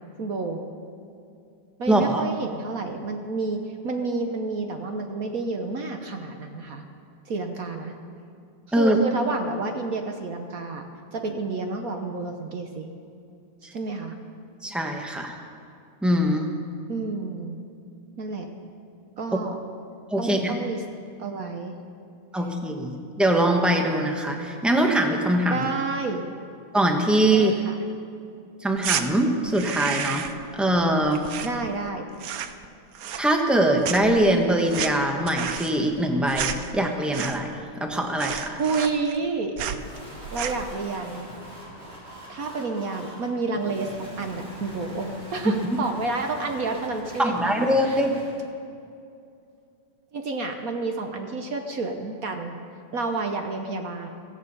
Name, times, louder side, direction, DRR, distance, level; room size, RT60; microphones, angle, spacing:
voice 1, 0.2-0.6 1.8-6.8 7.3-7.9 8.8-10.8 11.1-12.9 13.7-14.2 16.9-17.6 18.2-18.5 19.2-19.6 20.2-20.8 21.2-21.7 25.5-26.2 27.3-27.7 31.4-32.1 38.5-39.5 40.3-41.3 42.3-47.5 47.8-48.0 50.1-52.6 52.9-54.1, right 3 dB, 50° right, 5 dB, 1.2 m, -30 dB
voice 2, 1.9-2.2 8.7-9.0 14.6-15.3 16.0-16.5 20.1-20.6 22.3-25.7 26.7-27.5 28.6-30.3 30.6-31.2 33.2-37.5 37.8-38.6 47.2-48.1, right 1 dB, ahead, 2 dB, 0.7 m, -22 dB
sound 1, 28.8-29.1 29.5-30.5 30.7-31.9 32.2-32.7 33.0-33.6 33.8-37.6 37.9-38.0 38.2-39.3 39.6-39.8 40.2-40.7, right 9 dB, 85° right, 0.7 m, -31 dB
sound 2, 39.7-48.4, right 1 dB, 25° right, 3.2 m, -43 dB
17.0 x 14.5 x 5.5 m, 2.5 s
omnidirectional pair, 2.3 m